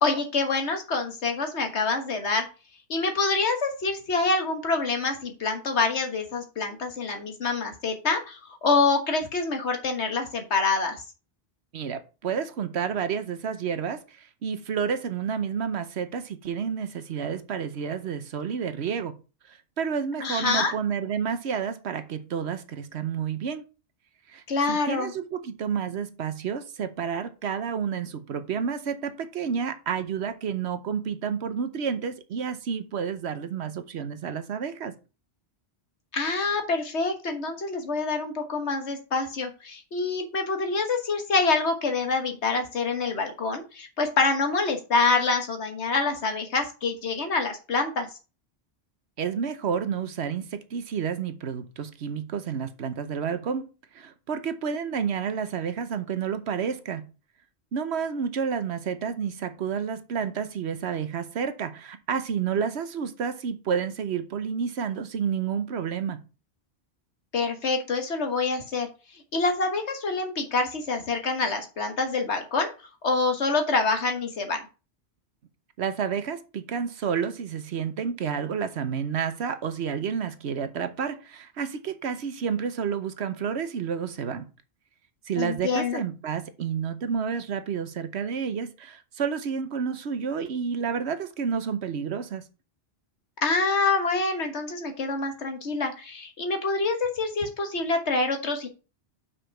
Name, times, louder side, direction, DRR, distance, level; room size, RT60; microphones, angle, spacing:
voice 1, 0.0-2.5 2.9-11.0 20.2-20.7 24.5-25.1 36.1-48.1 67.3-68.9 69.3-72.7 73.0-74.6 85.4-86.0 93.4-98.7, left 3 dB, 85° left, 1.7 m, -26 dB
voice 2, 11.7-19.1 19.5-23.6 24.3-34.9 49.2-57.1 57.7-66.2 75.8-84.5 85.3-92.5, right 7 dB, 80° right, 1.1 m, -30 dB
5.7 x 5.1 x 5.7 m
omnidirectional pair, 1.1 m